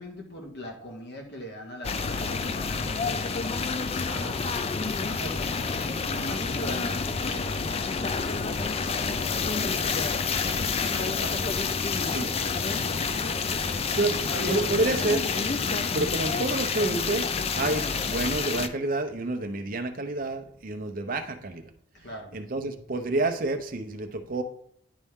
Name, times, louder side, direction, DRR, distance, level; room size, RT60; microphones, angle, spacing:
voice 1, 0.0-4.5 5.0-8.0 8.4-11.5 12.3-15.1 15.5-15.8 21.9-22.3, equal, 55° left, 1 dB, 1.6 m, -41 dB
sound 1, 1.8-18.7, left 5 dB, 30° left, 0.4 m, -28 dB
sound 2, 6.1-13.6, right 1 dB, 15° right, 0.8 m, -49 dB
voice 2, 12.0-12.3 13.9-15.2 15.9-17.3 17.5-21.7 22.3-24.4, right 2 dB, 45° right, 6 dB, 0.7 m, -29 dB
10.5 x 4.2 x 3.6 m, 0.67 s
head